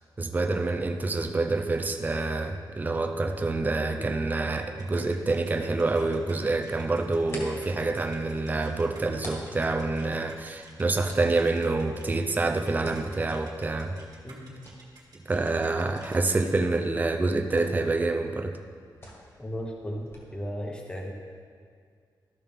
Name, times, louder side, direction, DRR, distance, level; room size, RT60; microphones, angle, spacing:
voice 1, 0.2-14.0 15.3-18.5, right 3 dB, 20° right, 5 dB, 0.5 m, -27 dB
sound 1, 4.8-16.5, right 3 dB, 55° right, 1.5 m, -53 dB
sound 2, 7.0-20.2, left 1 dB, 35° left, 1.8 m, -49 dB
voice 2, 14.2-14.6 19.4-21.1, equal, 10° left, 0 dB, 1.0 m, -36 dB
13.0 x 5.6 x 3.6 m, 2.1 s
wide cardioid pair, 145°, 8 cm